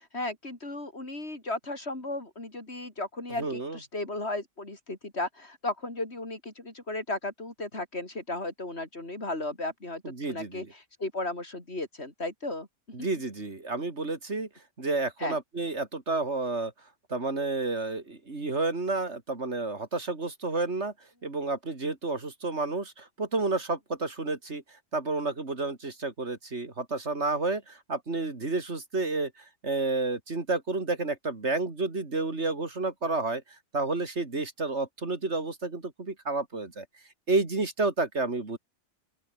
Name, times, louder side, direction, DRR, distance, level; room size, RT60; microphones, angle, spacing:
voice 1, 0.0-12.7 15.2-15.4, left 2 dB, 60° left, 5.0 m, -35 dB
voice 2, 3.4-3.8 10.0-10.7 12.9-14.5 14.8-16.7 17.1-20.9 21.2-24.6 24.9-29.3 29.6-33.4 33.7-36.8 37.3-38.6, right 3 dB, 65° right, 3.4 m, -30 dB
open air
omnidirectional pair, 1.2 m